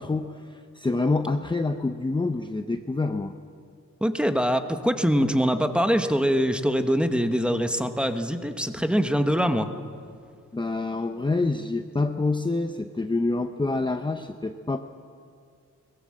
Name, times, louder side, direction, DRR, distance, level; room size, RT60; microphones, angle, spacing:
voice 1, 0.0-3.3 10.5-14.8, left 3 dB, 15° left, 6 dB, 0.7 m, -27 dB
voice 2, 4.0-9.7, equal, 5° right, 7 dB, 1.1 m, -23 dB
23.5 x 21.0 x 7.7 m, 2.3 s
wide cardioid pair, 160°, 30 cm